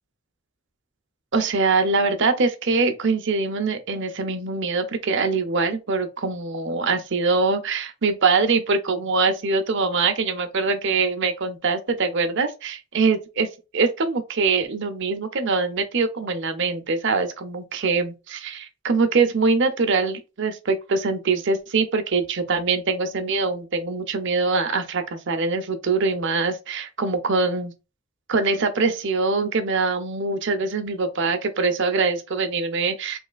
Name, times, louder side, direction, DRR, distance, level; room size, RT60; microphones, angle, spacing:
voice 1, 1.3-13.5 13.7-27.7 28.3-33.2, right 4 dB, 60° right, 0.8 m, -23 dB
3.5 x 3.2 x 2.4 m
head